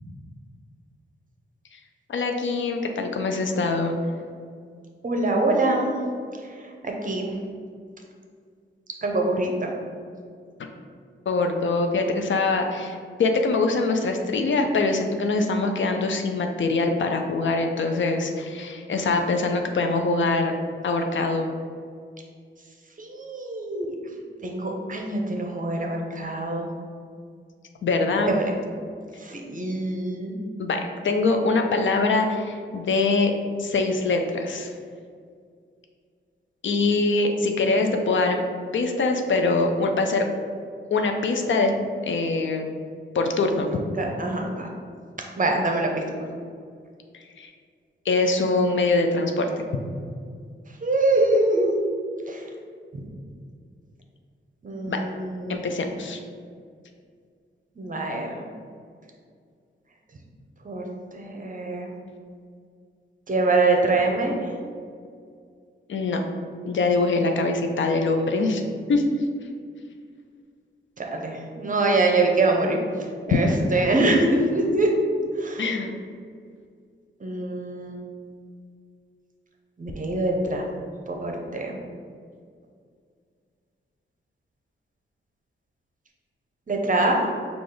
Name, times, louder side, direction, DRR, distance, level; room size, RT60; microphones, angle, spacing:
voice 1, 2.1-4.0 11.3-20.5 20.8-21.5 27.8-28.4 30.6-33.3 33.6-34.7 36.6-38.4 38.7-40.3 40.9-41.7 42.0-42.7 43.1-43.7 47.1-47.5 48.1-49.6 54.9-55.0 55.5-56.2 65.9-66.2 66.6-69.2 75.6-75.9, left 3 dB, 65° left, 4 dB, 0.5 m, -23 dB
voice 2, 5.0-5.9 6.8-7.3 9.0-9.7 23.0-23.9 24.4-26.7 28.3-28.5 29.2-30.3 44.0-44.7 45.4-45.9 50.8-51.9 52.3-52.4 54.6-55.7 57.8-58.4 60.6-60.9 61.1-61.9 63.3-64.4 71.0-72.8 73.3-74.9 75.4-75.6 77.2-78.0 79.8-80.6 81.1-81.7 86.7-87.2, right 2 dB, 40° right, 1 dB, 0.7 m, -24 dB
4.9 x 2.4 x 3.8 m, 2.2 s
cardioid pair, 70°, 21 cm